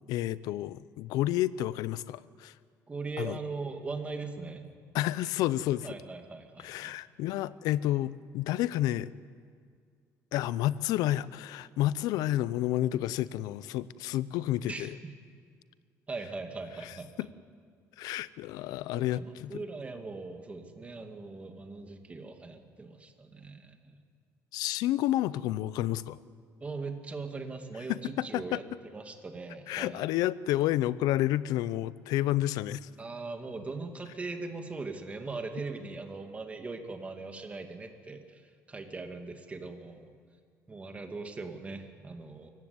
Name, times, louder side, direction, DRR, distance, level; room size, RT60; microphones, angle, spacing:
voice 1, 0.1-2.5 3.2-3.3 4.9-5.9 6.6-9.1 10.3-14.9 17.2-17.3 18.0-19.5 24.5-26.2 27.9-28.6 29.7-32.9, left 14 dB, 90° left, 18 dB, 0.6 m, -30 dB
voice 2, 2.9-4.8 5.8-6.9 14.6-15.2 16.1-17.3 18.9-24.0 26.6-30.0 33.0-40.1 40.7-42.5, right 3 dB, 20° right, 5 dB, 2.1 m, -40 dB
25.0 x 15.5 x 9.6 m, 2.1 s
cardioid pair, 135°, 6 cm